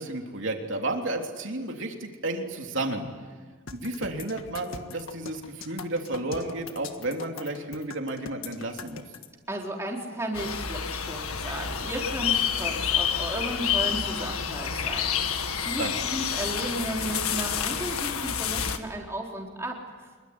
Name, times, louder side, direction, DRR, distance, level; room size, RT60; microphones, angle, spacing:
voice 1, 0.0-3.1 3.7-9.0 15.8-15.9, right 2 dB, 60° right, 2 dB, 3.4 m, -32 dB
sound 1, 3.7-9.3, left 5 dB, 70° left, 1.7 m, -42 dB
voice 2, 9.5-20.1, right 1 dB, 10° right, -1 dB, 4.0 m, -34 dB
sound 2, 10.3-18.8, left 8 dB, 85° left, 1.8 m, -29 dB
26.5 x 23.0 x 9.7 m, 1.5 s
head